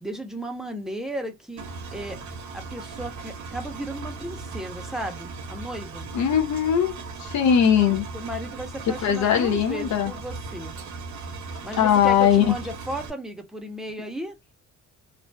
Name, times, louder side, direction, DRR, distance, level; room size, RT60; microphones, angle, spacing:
voice 1, 0.0-2.2 2.5-6.1 8.1-10.7 11.6-14.4, right 1 dB, ahead, 0.7 m, -35 dB
Engine, 1.6-13.1, right 4 dB, 70° right, 0.7 m, -38 dB
voice 2, 6.1-8.1 9.0-10.1 11.8-12.5, left 8 dB, 65° left, 0.6 m, -20 dB
2.5 x 2.2 x 2.2 m
cardioid pair, 90°, 30 cm